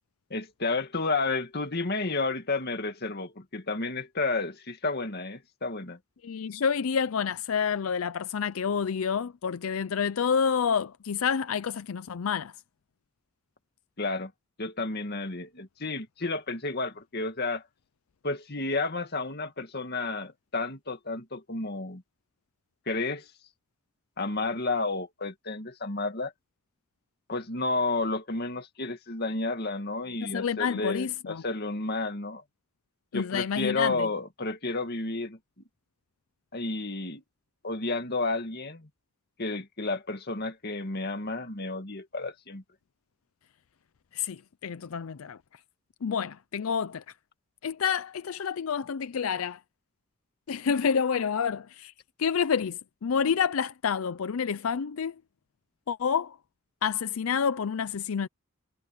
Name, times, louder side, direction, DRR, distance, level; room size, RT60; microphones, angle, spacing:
voice 1, 0.3-6.0 14.0-14.3 14.6-17.6 18.2-22.0 22.9-23.3 24.2-26.3 27.3-32.4 33.1-35.4 36.5-37.2 37.6-38.9 39.4-42.6, left 3 dB, 50° left, 2.2 m, -31 dB
voice 2, 6.2-12.5 30.2-31.4 33.1-34.1 44.1-45.4 46.0-47.0 47.6-49.6 50.5-51.9 52.2-55.2 55.9-56.4 56.8-58.3, left 6 dB, 85° left, 0.5 m, -28 dB
head